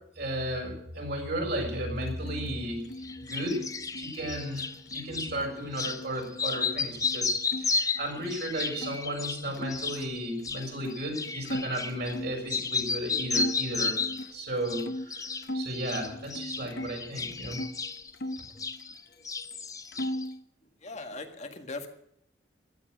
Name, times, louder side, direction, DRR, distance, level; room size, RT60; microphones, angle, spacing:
voice 1, 0.2-2.8 3.3-3.6 4.0-14.0 14.3-15.2 15.5-17.6, right 1 dB, 60° right, 0 dB, 6.3 m, -34 dB
sound 1, 1.9-7.7 8.0-9.0 9.5-12.4 12.9-13.0 13.3-15.7 16.1-17.7 18.1-19.3 19.5-20.4, left 1 dB, 60° left, 1.1 m, -39 dB
sound 2, 3.0-5.3 5.7-6.0 6.3-12.2 12.5-14.3 14.6-15.5 15.7-19.0 19.2-20.3, left 4 dB, 20° left, 0.9 m, -33 dB
voice 2, 20.8-21.9, left 3 dB, 40° left, 5 dB, 1.8 m, -39 dB
16.0 x 11.5 x 6.4 m, 0.72 s
head